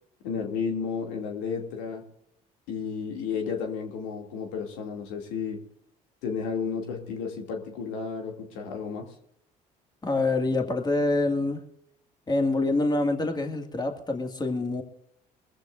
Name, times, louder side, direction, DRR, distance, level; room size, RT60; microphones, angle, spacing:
voice 1, 0.2-2.0 2.7-5.6 6.2-9.1, left 6 dB, 75° left, 2.6 m, -32 dB
voice 2, 10.0-11.6 12.3-14.8, left 2 dB, 20° left, 2.0 m, -26 dB
22.0 x 15.0 x 2.6 m
hypercardioid pair, 65°, 20 cm